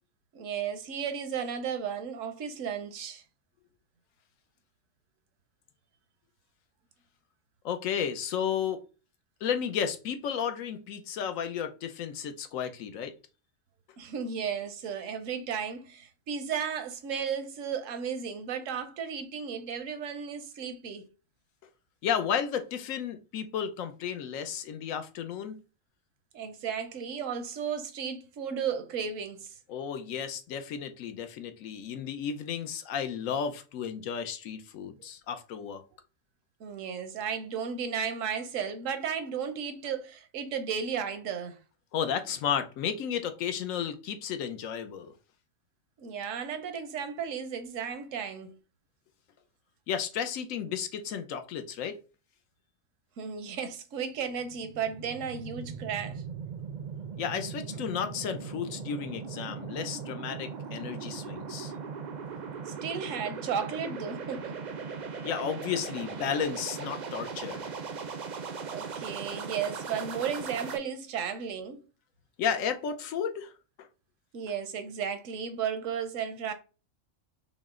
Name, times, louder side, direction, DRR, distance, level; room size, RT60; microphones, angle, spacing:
voice 1, 0.3-3.2 14.0-21.0 26.3-29.5 36.6-41.6 46.0-48.5 53.2-56.2 62.7-64.6 68.6-71.8 74.3-76.5, right 7 dB, 75° right, 1.1 m, -34 dB
voice 2, 7.6-8.8 9.4-13.1 22.0-25.6 29.7-35.8 41.9-45.1 49.9-52.0 57.2-61.7 65.2-67.7 72.4-73.5, left 8 dB, 85° left, 1.1 m, -33 dB
sound 1, 54.2-70.8, right 5 dB, 55° right, 0.5 m, -39 dB
5.7 x 2.1 x 3.6 m
omnidirectional pair, 1.4 m